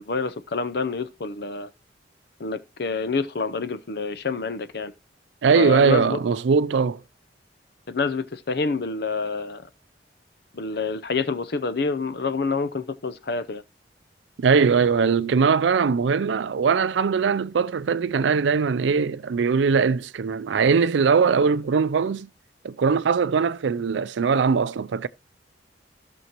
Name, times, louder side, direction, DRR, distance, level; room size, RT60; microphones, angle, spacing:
voice 1, 0.0-1.7 2.4-4.9 5.5-6.2 7.9-9.6 10.5-13.6, left 4 dB, 60° left, 0.7 m, -27 dB
voice 2, 5.4-7.0 14.4-22.3 22.6-25.1, right 5 dB, 80° right, 0.4 m, -21 dB
15.5 x 6.2 x 3.0 m
head